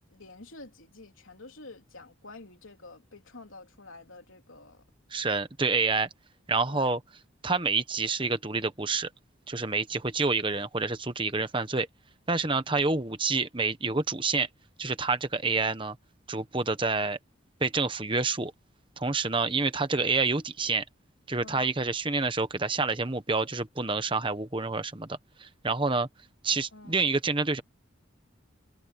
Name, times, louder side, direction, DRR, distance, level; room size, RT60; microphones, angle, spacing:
voice 1, 0.0-4.8 6.7-6.9 21.4-21.7 26.7-27.1, left 3 dB, 85° left, 3.5 m, -48 dB
voice 2, 5.1-6.1 6.5-7.0 7.4-9.1 9.5-11.9 12.3-14.5 14.8-16.0 16.3-17.2 17.6-18.5 19.0-20.8 21.3-25.1 25.4-26.1 26.4-27.6, right 3 dB, 25° right, 1.2 m, -28 dB
head